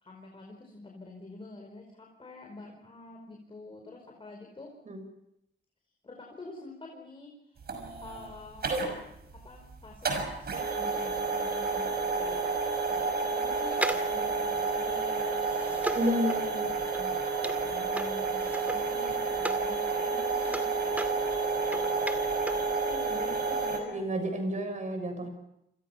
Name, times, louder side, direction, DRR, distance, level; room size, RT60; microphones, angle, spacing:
voice 1, 0.0-4.7 6.0-9.0 9.3-12.6 12.9-16.0 17.2-22.0 22.2-24.1, left 2 dB, 30° left, 1 dB, 5.0 m, -47 dB
sound 1, 7.6-23.8, right 4 dB, 55° right, 6.3 m, -30 dB
sound 2, 13.7-19.7 20.0-22.7 23.0-23.1, right 1 dB, 10° right, 2.2 m, -38 dB
voice 2, 16.0-16.7 17.0-17.1 23.9-25.3, equal, 40° right, 6 dB, 6.9 m, -31 dB
28.5 x 26.0 x 5.9 m, 0.81 s
wide cardioid pair, 145°, 19 cm